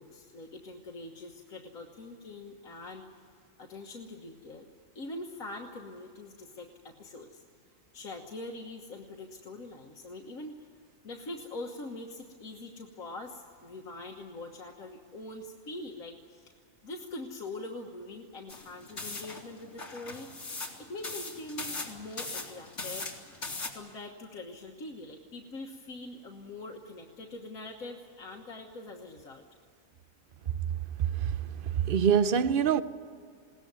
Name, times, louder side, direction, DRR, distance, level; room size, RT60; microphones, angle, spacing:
voice 1, 0.0-3.1 3.6-4.7 5.0-7.4 7.9-10.6 11.0-16.5 16.8-20.3 20.8-23.1 23.7-29.4, left 2 dB, 85° left, 1.8 m, -43 dB
sound 1, 18.5-23.7, left 3 dB, 60° left, 3.0 m, -39 dB
voice 2, 31.0-32.8, right 8 dB, 50° right, 0.8 m, -25 dB
21.5 x 18.0 x 9.5 m
omnidirectional pair, 1.4 m